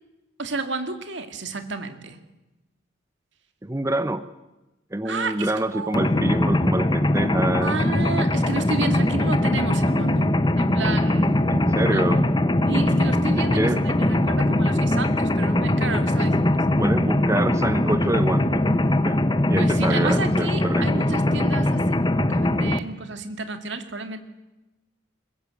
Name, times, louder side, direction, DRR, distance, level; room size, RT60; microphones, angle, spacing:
voice 1, 0.4-2.2 5.0-6.1 7.6-11.4 11.9-12.0 12.6-13.9 14.2-16.5 16.8-17.0 19.6-24.2, right 3 dB, 65° right, 8 dB, 2.2 m, -31 dB
voice 2, 3.6-4.3 4.9-7.7 11.5-12.2 13.4-13.8 16.8-18.7 19.0-19.2 19.5-20.9, right 1 dB, 15° right, 12 dB, 0.7 m, -26 dB
Mechanisms, 5.9-22.8, left 1 dB, 20° left, 0.9 m, -21 dB
22.0 x 20.0 x 8.3 m, 1.0 s
head